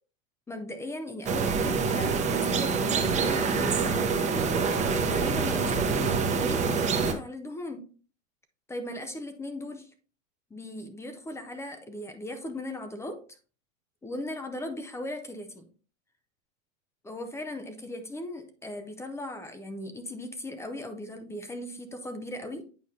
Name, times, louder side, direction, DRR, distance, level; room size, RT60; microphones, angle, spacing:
voice 1, 0.5-4.3 5.1-7.8 8.7-9.9 10.5-13.4 14.0-15.7 17.0-22.6, left 1 dB, 5° left, 8 dB, 0.5 m, -38 dB
sound 1, 1.2-7.1, right 5 dB, 15° right, 0.9 m, -26 dB
8.6 x 4.8 x 2.7 m, 0.39 s
hypercardioid pair, 130°, 40 cm